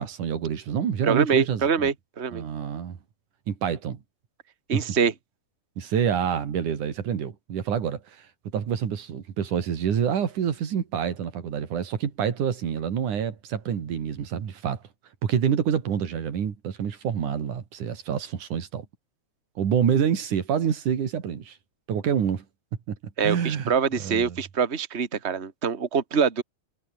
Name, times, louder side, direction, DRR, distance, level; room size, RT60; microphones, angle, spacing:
voice 1, 0.0-1.9 2.3-3.0 3.5-4.0 4.7-4.9 5.8-8.0 8.5-14.8 15.2-18.9 19.6-21.6 21.9-22.5 22.9-23.0 23.2-23.7 24.0-24.4, right 8 dB, 90° right, 4.0 m, -27 dB
voice 2, 1.0-2.4 4.7-5.1 23.2-26.4, right 6 dB, 25° right, 2.1 m, -24 dB
omnidirectional pair, 3.4 m